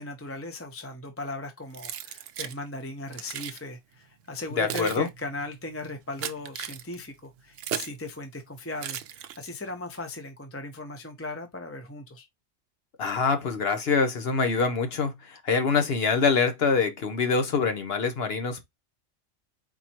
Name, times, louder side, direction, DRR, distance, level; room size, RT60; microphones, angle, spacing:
voice 1, 0.0-12.2, left 2 dB, 15° left, 0.8 m, -37 dB
Keys jangling, 1.7-2.6 3.1-3.6 4.3-8.0 8.8-9.7, right 10 dB, 75° right, 0.9 m, -37 dB
voice 2, 4.6-5.1 13.0-18.6, left 5 dB, 55° left, 1.0 m, -25 dB
4.3 x 4.2 x 2.9 m
omnidirectional pair, 1.3 m